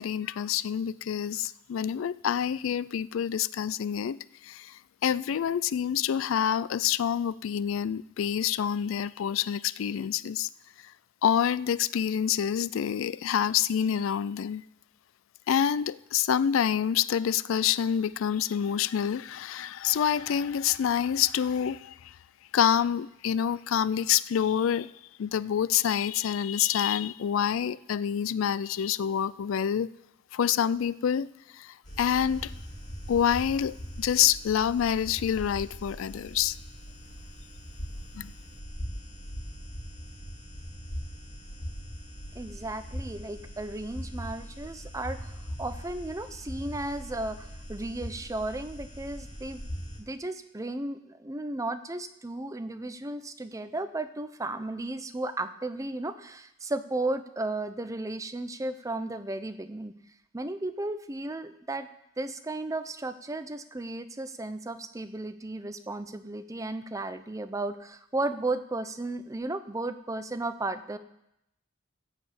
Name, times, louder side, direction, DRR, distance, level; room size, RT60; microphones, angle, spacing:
voice 1, 0.0-4.2 4.4-4.7 5.0-10.5 11.2-14.6 15.5-22.0 22.5-24.9 25.2-29.9 30.3-31.3 31.6-32.5 33.1-36.6 38.2-38.3, left 9 dB, 75° left, 0.3 m, -27 dB
sound 1, 31.8-50.0, equal, 35° left, 2.8 m, -41 dB
voice 2, 42.3-45.3 45.6-49.6 50.0-59.9 60.3-61.9 62.2-71.0, right 2 dB, 15° right, 0.5 m, -34 dB
14.5 x 4.9 x 8.1 m
head